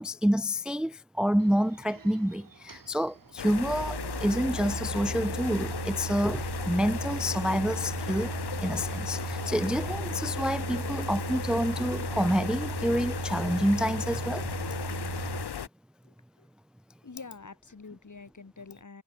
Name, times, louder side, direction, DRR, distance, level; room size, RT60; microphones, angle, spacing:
voice 1, 0.0-8.4 8.6-14.5, equal, ahead, 0.5 m, -28 dB
sound 1, 1.4-15.4, right 5 dB, 60° right, 2.7 m, -37 dB
sound 2, 3.4-15.7, left 8 dB, 90° left, 1.2 m, -36 dB
voice 2, 16.0-16.5 17.0-19.0, left 4 dB, 50° left, 3.7 m, -47 dB
wide cardioid pair, 85°, 39 cm